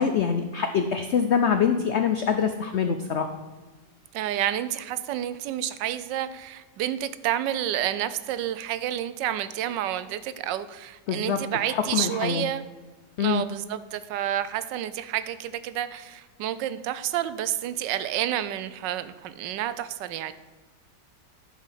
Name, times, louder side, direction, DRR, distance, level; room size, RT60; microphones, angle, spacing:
voice 1, 0.0-3.3 11.1-11.4 11.7-12.5 13.2-13.4, left 7 dB, 85° left, 7 dB, 0.6 m, -24 dB
voice 2, 4.1-12.6 13.2-20.3, right 11 dB, 90° right, 13 dB, 1.3 m, -29 dB
11.0 x 4.9 x 5.7 m, 1.3 s
omnidirectional pair, 1.9 m